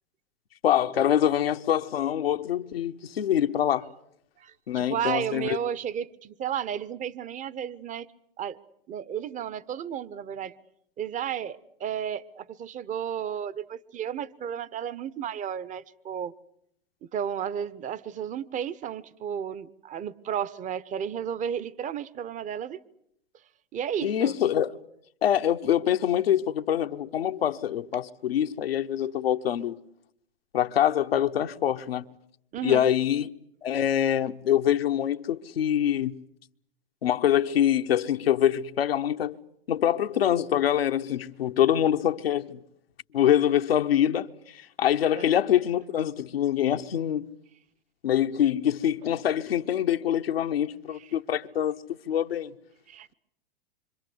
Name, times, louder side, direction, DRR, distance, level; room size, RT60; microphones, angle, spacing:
voice 1, 0.6-3.9 4.7-5.6 24.0-24.7 25.2-29.8 30.5-32.1 32.6-33.3 33.6-36.1 37.0-39.4 39.7-42.6 43.1-47.2 48.0-52.5, left 10 dB, 85° left, 1.1 m, -25 dB
voice 2, 4.4-8.1 8.4-8.6 8.9-10.5 11.0-16.3 17.0-22.8 23.7-24.3 32.5-32.9 45.1-45.3 50.9-51.1 52.9-53.1, right 9 dB, 25° right, 1.0 m, -33 dB
26.5 x 25.5 x 8.0 m
hypercardioid pair, 110°, 29 cm